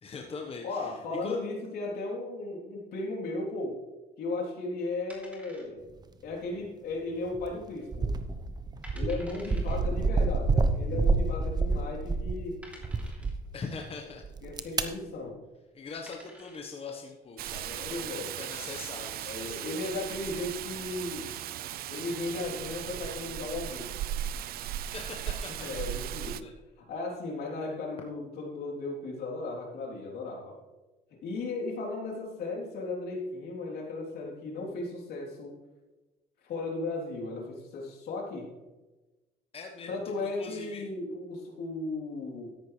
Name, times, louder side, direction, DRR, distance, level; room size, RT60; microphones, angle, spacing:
voice 1, 0.0-1.4 13.5-14.2 14.7-14.8 15.7-19.7 20.1-20.2 24.6-25.8 26.4-26.5 39.5-40.9, left 4 dB, 35° left, 1 dB, 1.3 m, -42 dB
voice 2, 0.6-3.8 4.2-5.9 6.2-8.1 8.9-12.6 14.4-15.4 17.8-18.3 19.2-21.3 21.9-23.9 25.6-26.5 26.8-30.6 31.2-35.5 36.4-38.5 39.9-42.5, left 2 dB, 70° left, -1 dB, 3.5 m, -36 dB
sound 1, 5.1-6.1 6.3-6.4 7.0-7.4 7.8-7.9 8.5-8.6 8.8-9.8 10.9-11.0 11.7-11.8 12.6-13.5 15.3-15.5 15.9-16.7, equal, 10° right, 3.1 m, -51 dB
sound 2, 7.3-7.5 7.9-12.4 12.8-13.3 14.2-14.8, right 3 dB, 25° right, 1.0 m, -28 dB
Rain, 17.4-26.4, right 11 dB, 60° right, 0.5 m, -37 dB
13.5 x 10.5 x 3.3 m, 1.1 s
cardioid pair, 110°, 17 cm